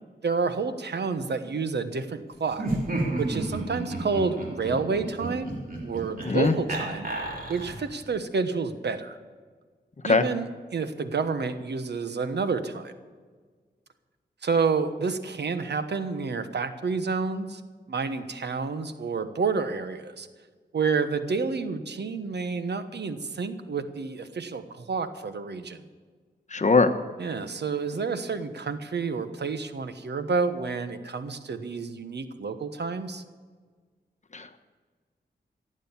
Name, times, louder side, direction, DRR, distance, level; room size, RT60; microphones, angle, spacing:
voice 1, 0.2-2.7 3.2-5.5 5.8-7.1 7.5-9.2 10.0-12.9 14.4-17.6 17.9-20.3 20.7-25.8 27.2-33.2, right 4 dB, 70° right, 10 dB, 1.2 m, -29 dB
Laughter, 2.5-7.9, right 2 dB, 55° right, 3.7 m, -32 dB
voice 2, 6.2-6.5 10.0-10.2 26.5-26.9 34.3-34.6, left 4 dB, 40° left, 8 dB, 1.2 m, -21 dB
16.0 x 8.8 x 7.3 m, 1.5 s
wide cardioid pair, 70°, 18 cm